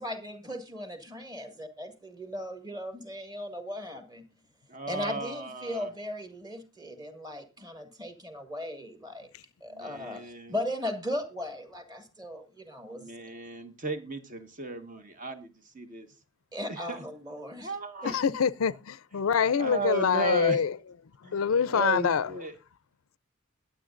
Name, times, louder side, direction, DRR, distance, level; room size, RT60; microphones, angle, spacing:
voice 1, 0.0-4.2 4.9-9.3 9.6-13.1 16.5-17.7 18.0-18.1, left 1 dB, 20° right, 1.9 m, -37 dB
voice 2, 4.7-5.9 9.7-10.5 12.9-16.1 16.7-17.0 17.6-18.2 19.6-20.6 21.2-22.5, right 3 dB, 40° right, 1.4 m, -35 dB
voice 3, 18.0-20.8 21.2-22.3, left 6 dB, 80° left, 0.5 m, -25 dB
21.5 x 8.4 x 2.5 m
head